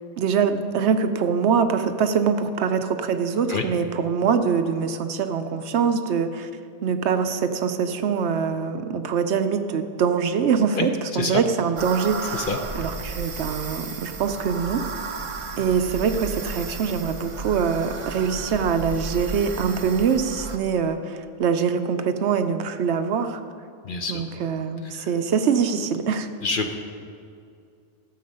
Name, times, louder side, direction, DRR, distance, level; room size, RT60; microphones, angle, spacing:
voice 1, 0.2-6.5 6.8-12.5 12.7-14.8 15.6-23.4 24.1-26.3, right 6 dB, 70° right, 8 dB, 0.9 m, -24 dB
sound 1, 11.8-20.6, right 4 dB, 40° right, 0.5 m, -34 dB
voice 2, 23.8-24.2 25.0-25.1 26.4-26.7, left 4 dB, 50° left, 5 dB, 0.8 m, -26 dB
13.5 x 7.3 x 5.4 m, 2.4 s
omnidirectional pair, 1.2 m